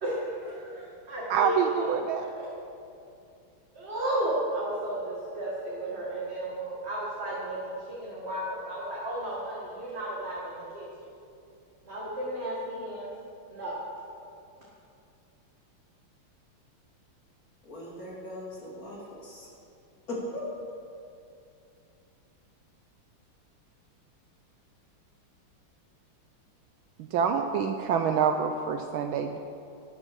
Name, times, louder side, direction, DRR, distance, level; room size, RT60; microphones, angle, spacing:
voice 1, 0.0-2.5 3.7-10.9 11.8-13.1 13.5-13.8, right 1 dB, 30° right, -6 dB, 2.1 m, -33 dB
voice 2, 1.3-2.2 27.0-29.4, right 7 dB, 75° right, 6 dB, 1.4 m, -26 dB
voice 3, 17.6-19.5 20.1-20.5, left 1 dB, 40° left, -4 dB, 3.0 m, -38 dB
12.0 x 11.0 x 6.3 m, 2.6 s
omnidirectional pair, 2.4 m